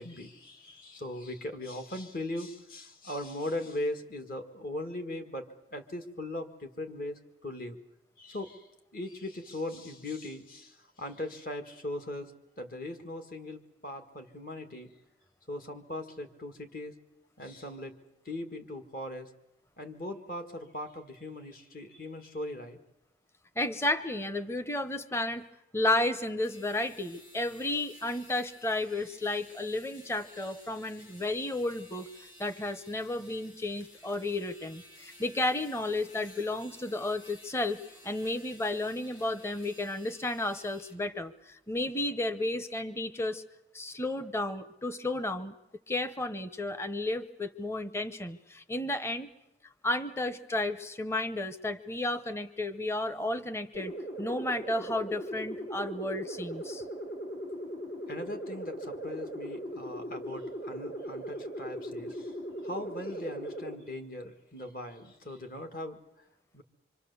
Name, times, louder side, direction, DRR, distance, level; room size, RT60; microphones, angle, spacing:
voice 1, 0.0-7.8 8.2-12.3 12.6-14.9 15.5-16.9 17.4-18.0 18.3-19.3 19.8-22.8 58.1-62.3 62.6-66.0 66.5-66.6, left 1 dB, 50° left, 6 dB, 1.8 m, -39 dB
voice 2, 23.6-25.5 25.7-43.4 43.7-45.6 45.9-49.3 49.8-53.9 54.2-56.8, left 2 dB, 15° left, 10 dB, 0.8 m, -32 dB
sound 1, 26.3-41.0, left 1 dB, 90° left, 5.0 m, -54 dB
sound 2, 53.7-63.8, right 1 dB, 70° left, 3.4 m, -39 dB
25.5 x 25.0 x 7.0 m, 0.89 s
head